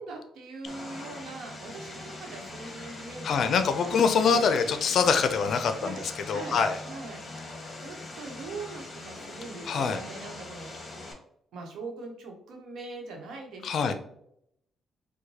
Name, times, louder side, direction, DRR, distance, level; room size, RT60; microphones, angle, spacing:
voice 1, 0.0-4.4 5.7-6.0 6.3-6.6 6.8-7.5 7.8-10.9 11.5-13.9, right 3 dB, 75° right, 1 dB, 1.0 m, -42 dB
Vehicle, 0.7-11.1, left 2 dB, 20° left, 1.4 m, -42 dB
voice 2, 3.2-6.0 6.3-6.8 9.7-10.0 13.6-13.9, left 6 dB, 65° left, 9 dB, 0.4 m, -24 dB
4.6 x 2.1 x 2.8 m, 0.73 s
cardioid pair, 90°, 0 cm